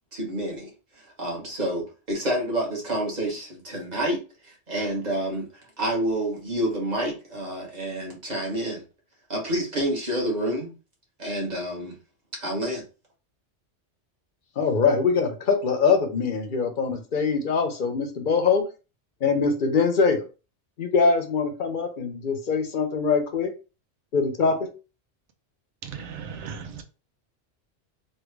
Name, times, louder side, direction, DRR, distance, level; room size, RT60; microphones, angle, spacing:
voice 1, 0.1-0.7 1.0-5.5 5.8-8.8 9.3-10.7 11.2-12.0 12.4-12.8, right 1 dB, 35° right, 1.2 m, -28 dB
voice 2, 14.6-18.6 19.2-20.2 20.8-23.5 24.1-24.7, left 5 dB, 50° left, 0.7 m, -23 dB
voice 3, 25.9-26.8, right 6 dB, 70° right, 0.9 m, -37 dB
3.3 x 2.3 x 3.2 m
omnidirectional pair, 1.3 m